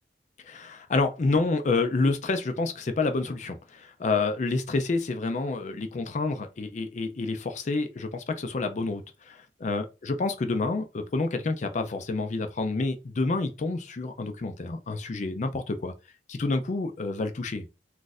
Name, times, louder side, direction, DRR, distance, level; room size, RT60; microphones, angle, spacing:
voice 1, 0.4-15.9 16.3-17.7, left 3 dB, 45° left, 0.4 m, -28 dB
2.5 x 2.4 x 3.9 m
head